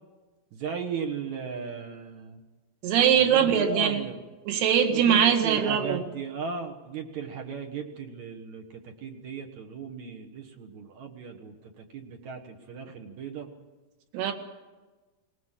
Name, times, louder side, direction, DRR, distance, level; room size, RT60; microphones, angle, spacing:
voice 1, 0.5-2.4 3.1-4.2 4.9-13.5, right 6 dB, 60° right, 3 dB, 2.2 m, -37 dB
voice 2, 2.8-4.0 4.5-6.0 14.1-14.3, right 8 dB, 80° right, 5 dB, 3.8 m, -22 dB
20.5 x 19.0 x 7.5 m, 1.2 s
omnidirectional pair, 4.6 m